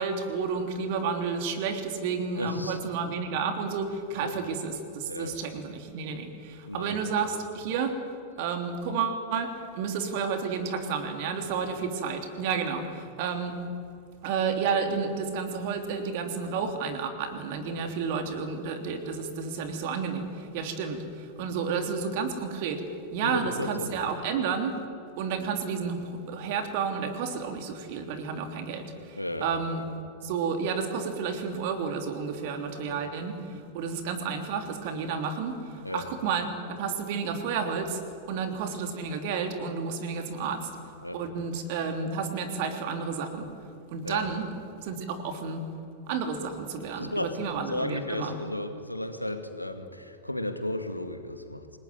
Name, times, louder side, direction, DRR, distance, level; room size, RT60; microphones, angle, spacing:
voice 1, 0.0-8.1 8.4-13.6 14.2-22.8 23.1-24.7 25.2-29.8 30.2-36.5 36.8-40.8 41.1-43.5 43.9-44.5 44.8-45.6 46.1-48.3, right 5 dB, 50° right, 6 dB, 3.3 m, -31 dB
voice 2, 2.4-2.8 4.2-4.3 5.0-5.4 6.6-7.2 11.6-11.7 17.8-17.9 23.2-24.0 29.2-29.9 32.9-33.0 35.8-36.1 41.0-41.2 44.0-44.3 47.0-51.8, left 1 dB, 85° left, 7 dB, 2.2 m, -34 dB
28.5 x 19.5 x 9.4 m, 2.4 s
figure-of-eight pair, 90°, 0 cm